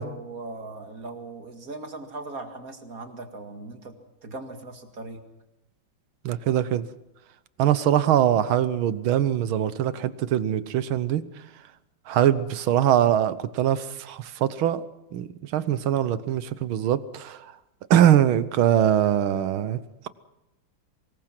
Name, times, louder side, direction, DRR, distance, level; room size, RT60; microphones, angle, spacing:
voice 1, 0.0-4.0 4.2-5.2, right 2 dB, 45° right, 2.4 m, -39 dB
voice 2, 6.3-6.9 7.6-11.2 12.1-14.8 15.1-17.4 17.9-19.8, right 11 dB, 80° right, 1.8 m, -22 dB
24.5 x 21.0 x 6.0 m
omnidirectional pair, 2.3 m